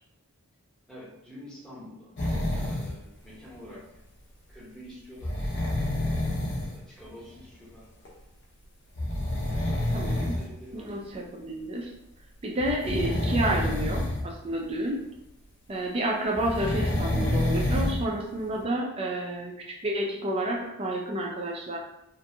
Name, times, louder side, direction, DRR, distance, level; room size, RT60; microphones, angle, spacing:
voice 1, 0.9-2.1 2.5-4.0 4.5-5.4 6.5-7.9 9.7-11.0, equal, 5° left, -8 dB, 0.8 m, -47 dB
sound 1, 2.2-2.9 5.2-6.7 8.1-8.2 9.0-10.4 11.1-11.2 12.6-14.3 14.6-14.7 16.3-18.1 18.6-18.7, left 1 dB, 55° left, 0.6 m, -28 dB
voice 2, 9.9-10.3 10.7-11.9 12.4-15.0 15.7-21.8, right 1 dB, 25° right, 0 dB, 0.3 m, -30 dB
2.6 x 2.2 x 2.6 m, 0.83 s
head